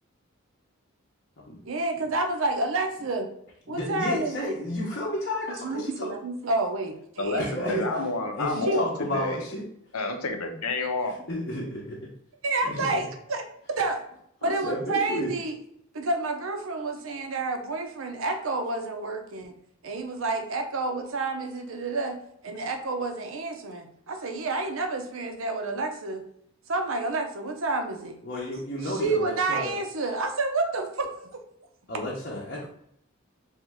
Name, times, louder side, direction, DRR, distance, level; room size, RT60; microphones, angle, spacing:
voice 1, 1.6-3.3 3.7-4.6 5.5-6.9 7.2-8.1 8.7-8.9 12.4-13.4 13.8-14.0 14.4-15.5 15.9-19.5 19.8-26.2 26.7-28.2 28.8-31.4, right 2 dB, 70° right, 5 dB, 0.7 m, -29 dB
voice 2, 3.7-6.1 7.3-7.9 8.3-9.6 11.1-12.1 12.6-13.1 14.4-15.4 28.2-29.8 31.9-32.7, left 1 dB, 50° left, -5 dB, 0.7 m, -32 dB
voice 3, 7.2-9.4 9.9-11.2, left 3 dB, 85° left, 5 dB, 0.7 m, -29 dB
3.6 x 3.1 x 3.5 m, 0.71 s
head